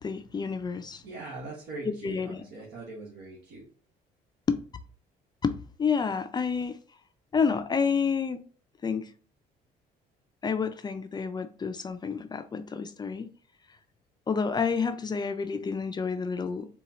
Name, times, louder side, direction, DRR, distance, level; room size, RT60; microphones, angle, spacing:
voice 1, 0.0-1.0 1.8-2.5 4.5-4.6 5.4-6.8 7.3-8.4 8.8-9.1 10.4-13.3 14.3-16.7, left 5 dB, 25° left, 0.4 m, -29 dB
voice 2, 1.0-3.6, right 3 dB, 75° right, 1.4 m, -41 dB
4.2 x 2.3 x 3.9 m
cardioid pair, 110°, 17 cm